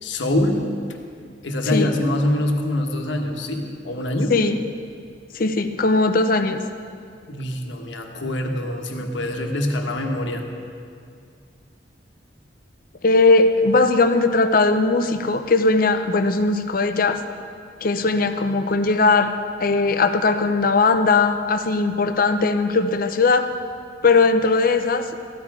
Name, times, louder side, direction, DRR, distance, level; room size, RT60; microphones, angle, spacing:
voice 1, 0.0-0.8 1.4-4.4 7.3-10.5, left 1 dB, 85° left, 3 dB, 1.3 m, -24 dB
voice 2, 5.3-6.6 13.0-17.2 17.8-19.3 19.6-23.5 24.0-25.1, left 3 dB, 50° left, 8 dB, 0.7 m, -19 dB
14.0 x 11.0 x 4.8 m, 2.3 s
head